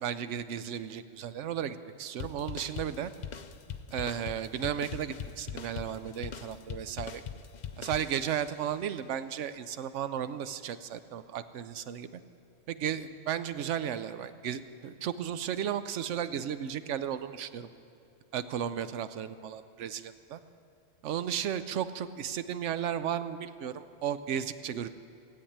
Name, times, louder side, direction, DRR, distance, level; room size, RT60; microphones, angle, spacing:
voice 1, 0.0-3.1 3.9-7.2 7.8-12.2 12.7-17.7 18.3-20.4 21.0-24.9, right 9 dB, 75° right, 12 dB, 1.0 m, -34 dB
sound 1, 2.2-8.6, left 7 dB, 55° left, 0.5 m, -41 dB
16.5 x 8.6 x 8.7 m, 2.6 s
omnidirectional pair, 1.3 m